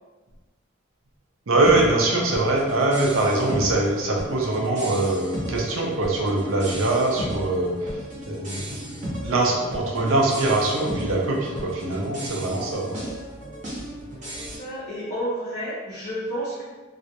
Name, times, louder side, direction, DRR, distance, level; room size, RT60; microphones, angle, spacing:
voice 1, 1.5-8.0 8.3-13.0, right 2 dB, 85° right, -2 dB, 0.5 m, -23 dB
sound 1, 1.6-14.6, equal, 35° right, 0.7 m, -35 dB
voice 2, 14.3-16.6, equal, 35° left, -7 dB, 0.4 m, -31 dB
2.3 x 2.0 x 2.7 m, 1.3 s
head